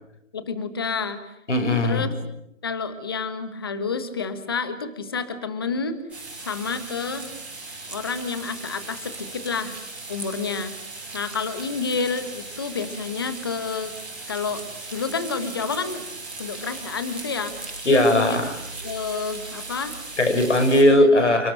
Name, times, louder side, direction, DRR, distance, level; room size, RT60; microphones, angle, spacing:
voice 1, 0.3-1.4 1.8-2.1 2.6-6.0 6.4-7.3 7.9-9.8 10.1-10.7 11.1-13.9 14.3-14.6 14.9-16.0 16.4-18.5 18.8-20.0 20.9-21.4, left 5 dB, 20° left, 11 dB, 1.4 m, -29 dB
voice 2, 1.5-2.1 17.8-18.5 20.2-21.5, left 1 dB, 60° left, 7 dB, 6.1 m, -18 dB
sound 1, 6.1-20.8, right 3 dB, 5° right, 6.0 m, -38 dB
30.0 x 18.5 x 8.7 m, 0.81 s
figure-of-eight pair, 165°, 40 cm